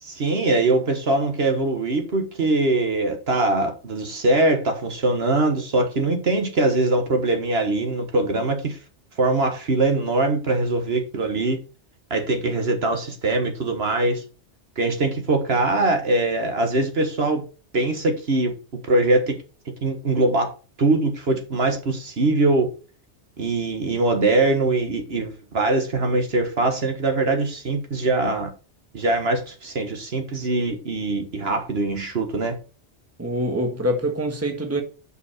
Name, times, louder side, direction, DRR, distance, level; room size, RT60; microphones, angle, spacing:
voice 1, 0.0-8.8 9.2-11.6 12.1-14.2 14.8-17.4 17.7-18.5 18.9-19.4 19.8-22.7 23.4-28.5 28.9-32.6, right 2 dB, 60° right, 1.6 m, -22 dB
voice 2, 33.2-34.8, equal, 15° right, 1.3 m, -25 dB
7.2 x 5.6 x 4.3 m
omnidirectional pair, 1.2 m